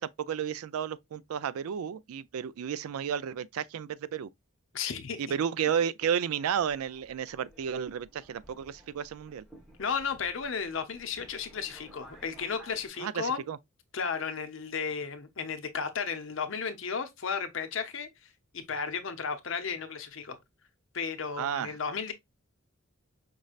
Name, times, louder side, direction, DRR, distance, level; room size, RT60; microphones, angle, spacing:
voice 1, 0.0-4.3 5.2-9.4 13.0-13.6 21.4-21.7, right 8 dB, 85° right, 0.4 m, -32 dB
voice 2, 4.7-5.2 9.8-13.4 13.9-18.1 18.5-20.4 20.9-22.1, left 6 dB, 65° left, 0.7 m, -34 dB
Subway metro underground, 6.4-12.9, right 1 dB, ahead, 1.0 m, -55 dB
5.2 x 3.2 x 2.3 m
head